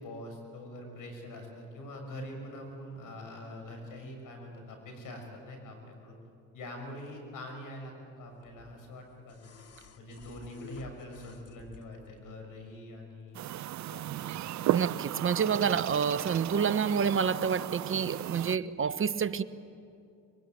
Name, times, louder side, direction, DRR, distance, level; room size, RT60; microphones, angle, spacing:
voice 1, 0.0-6.2 6.5-9.7 10.0-13.4 13.9-14.5, left 1 dB, 65° left, 3 dB, 6.5 m, -44 dB
sound 1, 8.4-12.2 13.5-13.6, left 6 dB, 45° left, 2.3 m, -52 dB
sound 2, 13.3-18.6, right 13 dB, 55° right, 0.6 m, -35 dB
voice 2, 14.7-19.4, right 6 dB, 40° right, 14 dB, 1.1 m, -28 dB
24.5 x 22.5 x 9.2 m, 2.5 s
supercardioid pair, 70°, 34 cm